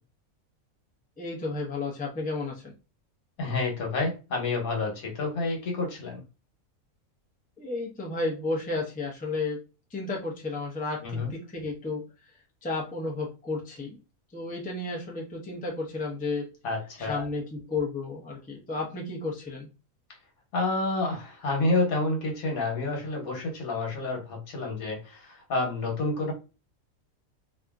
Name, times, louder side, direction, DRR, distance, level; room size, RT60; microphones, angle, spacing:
voice 1, 1.2-2.7 7.6-9.6 9.9-12.0 12.6-14.0 14.3-16.5 17.0-19.7, left 3 dB, 10° left, -2 dB, 0.4 m, -32 dB
voice 2, 3.4-6.2 11.0-11.3 16.6-17.2 20.5-26.3, left 2 dB, 75° left, 0 dB, 1.4 m, -29 dB
2.7 x 2.6 x 2.3 m, 0.30 s
omnidirectional pair, 1.5 m